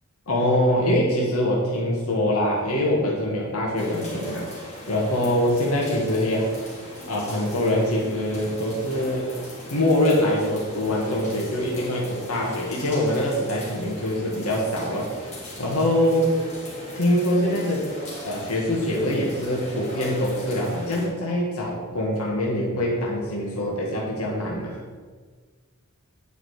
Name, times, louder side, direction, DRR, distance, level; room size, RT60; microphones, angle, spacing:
voice 1, 0.3-6.5 7.0-9.3 9.7-15.1 15.6-16.3 16.9-17.9 18.2-24.8, left 1 dB, 80° left, -3 dB, 1.6 m, -24 dB
sound 1, 3.8-21.1, left 1 dB, 30° left, 2.8 m, -38 dB
9.8 x 5.0 x 4.8 m, 1.5 s
head